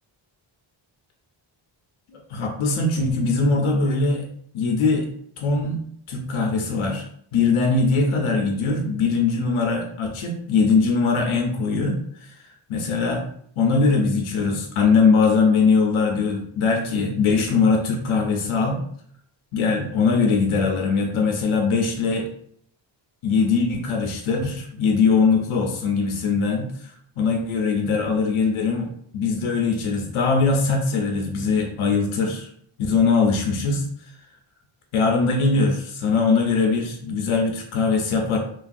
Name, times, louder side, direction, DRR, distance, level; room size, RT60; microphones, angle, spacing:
voice 1, 2.1-4.3 4.5-5.1 5.4-7.0 7.3-12.0 12.7-13.2 13.6-18.8 19.5-22.3 23.2-26.9 27.2-28.9 29.1-32.5 32.8-33.9 34.9-38.4, left 4 dB, 90° left, 1 dB, 0.6 m, -21 dB
3.1 x 2.3 x 2.5 m, 0.65 s
wide cardioid pair, 150°, 48 cm